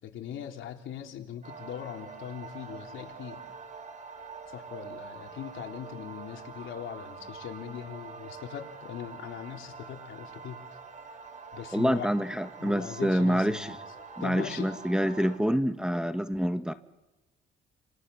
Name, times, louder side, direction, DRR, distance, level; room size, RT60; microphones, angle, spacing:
voice 1, 0.0-3.4 4.5-10.6 11.5-13.7 14.2-14.7, left 9 dB, 75° left, 3 dB, 3.8 m, -40 dB
sound 1, 1.4-15.4, right 5 dB, 40° right, 4.4 m, -45 dB
voice 2, 11.7-13.8 14.2-16.7, equal, 5° right, 9 dB, 1.5 m, -27 dB
29.5 x 28.0 x 7.2 m, 1.0 s
cardioid pair, 90°, 20 cm